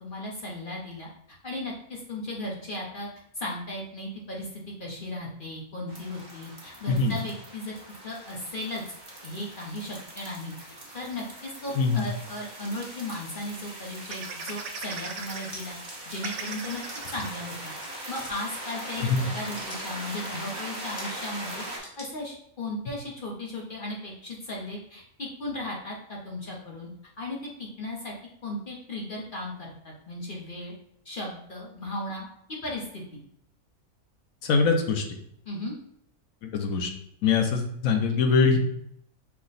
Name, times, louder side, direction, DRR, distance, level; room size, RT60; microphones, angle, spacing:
voice 1, 0.0-3.1 3.3-7.8 8.0-8.8 9.2-10.5 10.9-15.8 16.0-16.8 17.1-17.7 18.1-26.9 27.2-28.1 28.4-30.7 31.0-33.2 35.4-35.7, left 1 dB, 45° left, -2 dB, 0.8 m, -36 dB
sound 1, 5.9-21.8, right 1 dB, 35° right, 1.1 m, -41 dB
voice 2, 11.8-12.1 19.0-19.2 34.4-35.0 36.4-36.9 37.2-38.6, left 4 dB, 70° left, 5 dB, 1.1 m, -23 dB
sound 2, 14.1-15.5 15.9-16.0 16.2-17.3 17.9-18.0 18.3-18.5, right 5 dB, 65° right, 0.8 m, -38 dB
sound 3, 15.2-15.6 16.7-17.2 17.6-17.9 18.1-18.6 19.3-19.9 20.8-21.2 21.8-22.1, left 1 dB, 25° left, 1.2 m, -44 dB
5.7 x 2.1 x 3.9 m, 0.70 s
omnidirectional pair, 1.5 m